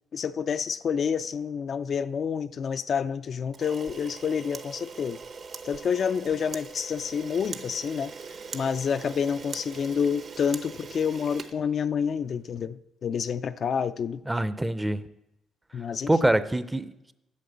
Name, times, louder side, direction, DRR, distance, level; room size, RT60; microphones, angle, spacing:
voice 1, 0.1-5.2 5.6-8.1 8.5-14.2 15.7-16.3, left 7 dB, 55° left, 0.3 m, -28 dB
Camera, 3.5-12.2, right 5 dB, 55° right, 0.8 m, -42 dB
voice 2, 14.3-15.0 16.1-17.1, right 1 dB, 10° right, 0.5 m, -25 dB
8.6 x 6.0 x 8.0 m
cardioid pair, 90°, 0 cm